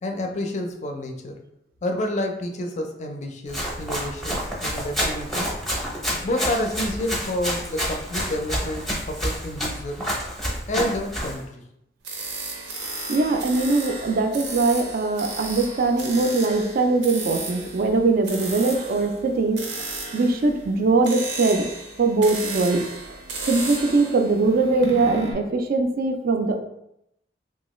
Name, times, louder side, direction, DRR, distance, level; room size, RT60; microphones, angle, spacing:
voice 1, 0.0-1.4 1.8-5.5 6.2-10.1 10.7-11.6, left 1 dB, 40° left, 3 dB, 0.4 m, -29 dB
Run, 3.5-11.4, equal, ahead, 0.6 m, -29 dB
sound 1, 12.0-25.3, right 3 dB, 85° right, 0.7 m, -34 dB
voice 2, 13.1-19.6 20.1-21.6 22.0-22.8 23.5-26.6, right 3 dB, 55° right, 5 dB, 0.4 m, -21 dB
2.9 x 2.3 x 3.0 m, 0.80 s
head